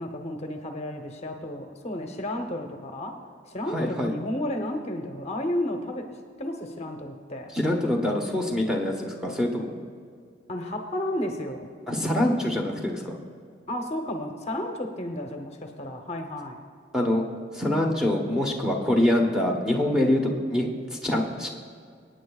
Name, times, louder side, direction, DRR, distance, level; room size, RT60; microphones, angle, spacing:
voice 1, 0.0-3.2 3.5-6.1 6.4-7.5 10.5-11.7 13.7-16.6, left 1 dB, 35° left, 4 dB, 0.9 m, -32 dB
voice 2, 3.7-4.1 7.5-9.7 11.9-13.2 16.9-17.2 17.5-21.5, left 1 dB, 5° right, 0 dB, 1.0 m, -25 dB
25.0 x 9.1 x 2.4 m, 2.2 s
head